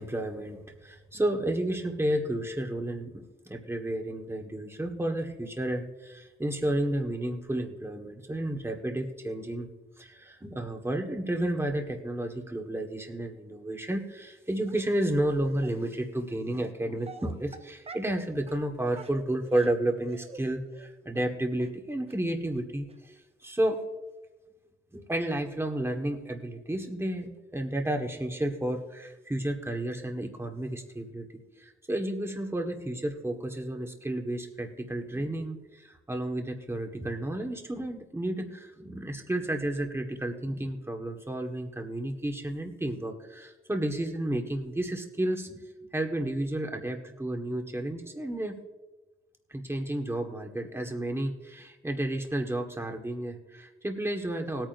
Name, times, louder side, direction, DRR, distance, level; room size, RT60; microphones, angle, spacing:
voice 1, 0.0-9.7 10.0-23.1 23.4-23.8 24.9-31.2 31.6-45.6 45.9-48.6 49.5-54.7, right 1 dB, 10° right, 3 dB, 1.5 m, -32 dB
Dog, 14.7-15.0 15.6-15.7 16.5-16.7 17.0-18.2 18.5-18.6 18.9-20.4 20.7-20.9 21.1-21.3 21.6-21.7 22.1-22.2 22.6-22.7 22.9-23.0, right 4 dB, 30° right, 0.6 m, -47 dB
19.5 x 9.1 x 2.6 m, 1.1 s
wide cardioid pair, 110°, 21 cm